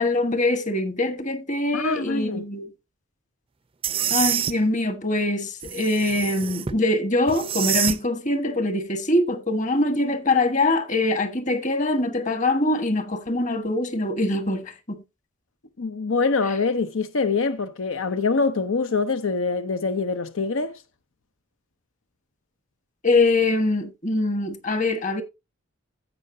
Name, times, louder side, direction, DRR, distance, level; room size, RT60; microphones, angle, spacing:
voice 1, 0.0-2.7 4.1-15.0 23.0-25.2, left 2 dB, 40° left, 1.4 m, -23 dB
voice 2, 1.7-2.4 15.8-20.8, left 4 dB, 80° left, 0.8 m, -24 dB
sound 1, 3.8-4.5 5.6-6.8 7.3-8.0, right 9 dB, 25° right, 0.5 m, -26 dB
16.0 x 5.6 x 2.7 m
head